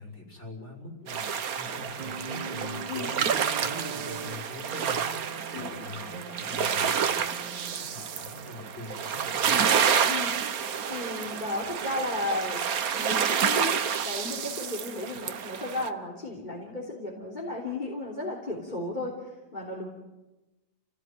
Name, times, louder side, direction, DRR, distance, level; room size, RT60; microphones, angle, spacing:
voice 1, 0.0-9.6, left 2 dB, 40° left, 1 dB, 6.0 m, -43 dB
sound 1, 1.1-15.9, right 7 dB, 60° right, 1.5 m, -29 dB
sound 2, 2.0-8.2 9.2-9.3, right 6 dB, 80° right, 2.0 m, -43 dB
voice 2, 10.0-12.6 12.9-19.9, left 2 dB, 25° left, -2 dB, 3.6 m, -34 dB
30.0 x 17.0 x 9.0 m, 1.1 s
omnidirectional pair, 1.8 m